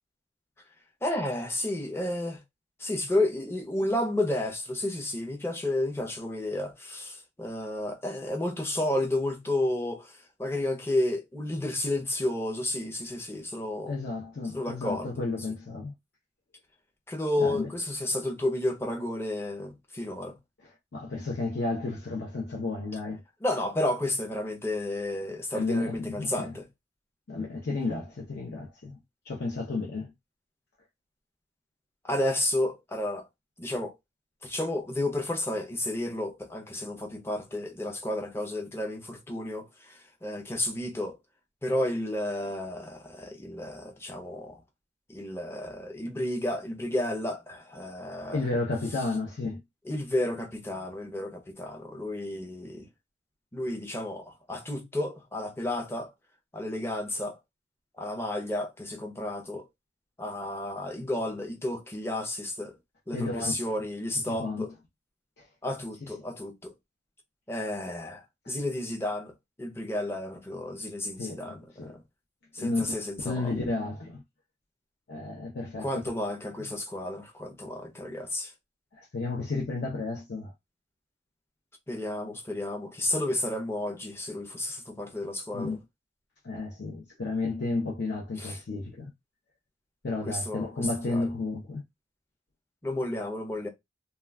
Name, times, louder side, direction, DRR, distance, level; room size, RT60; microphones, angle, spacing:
voice 1, 1.0-2.4 2.8-14.0 14.5-15.1 17.1-20.4 23.4-26.7 32.0-33.2 33.6-33.9 34.4-41.2 41.6-44.6 45.1-48.5 49.8-52.9 53.5-56.1 56.5-57.4 58.0-59.7 60.2-62.8 63.1-64.7 65.6-66.7 67.5-69.3 69.6-72.0 72.5-73.5 75.8-78.5 81.9-85.8 88.4-88.6 90.3-91.3 92.8-93.7, left 1 dB, 15° left, 0.5 m, -32 dB
voice 2, 13.9-15.9 17.4-17.7 20.9-23.2 25.5-26.5 27.3-29.0 29.2-30.1 48.3-49.6 63.1-63.5 64.3-64.7 65.4-65.5 71.2-72.0 72.6-72.8 73.2-74.2 75.1-75.9 79.0-80.5 85.5-85.8 86.4-89.1 90.0-91.8, left 3 dB, 60° left, 0.6 m, -32 dB
2.3 x 2.2 x 3.4 m
head